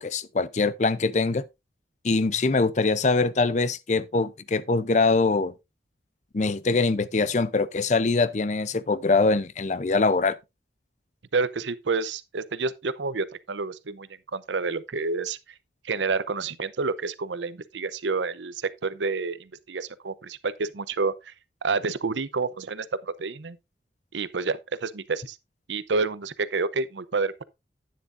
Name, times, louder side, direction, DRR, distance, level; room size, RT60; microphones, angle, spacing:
voice 1, 0.0-1.4 2.0-5.5 6.3-10.3, left 3 dB, 40° left, 0.5 m, -23 dB
voice 2, 11.3-15.4 15.8-21.3 21.6-23.6 24.1-25.4 25.7-27.4, right 4 dB, 80° right, 0.7 m, -29 dB
10.5 x 9.4 x 2.5 m
head